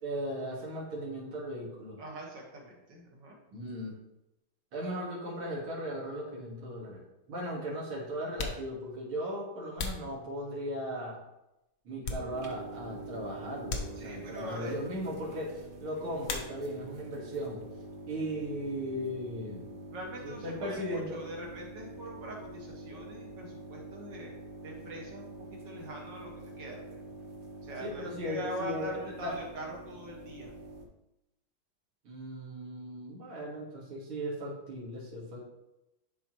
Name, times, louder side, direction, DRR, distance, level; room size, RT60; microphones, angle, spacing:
voice 1, 0.0-2.0 3.5-3.9 4.7-7.0 7.3-11.2 11.8-17.6 18.1-19.7 20.2-21.2 27.8-29.0 29.2-29.3 32.0-35.4, equal, 85° right, -5 dB, 2.7 m, -37 dB
voice 2, 2.0-3.4 14.0-14.8 19.9-24.3 24.6-27.0 27.6-30.5, right 1 dB, 60° right, -1 dB, 2.0 m, -43 dB
sound 1, 6.5-6.6 7.5-7.6 8.2-10.9 11.4-12.8 13.0-13.2 13.6-14.5 16.2-17.0 17.3-18.0 18.2-20.4, left 4 dB, 60° left, 0.9 m, -41 dB
sound 2, 12.3-30.8, right 2 dB, 45° right, 0.7 m, -46 dB
11.0 x 4.3 x 3.0 m, 0.92 s
omnidirectional pair, 2.3 m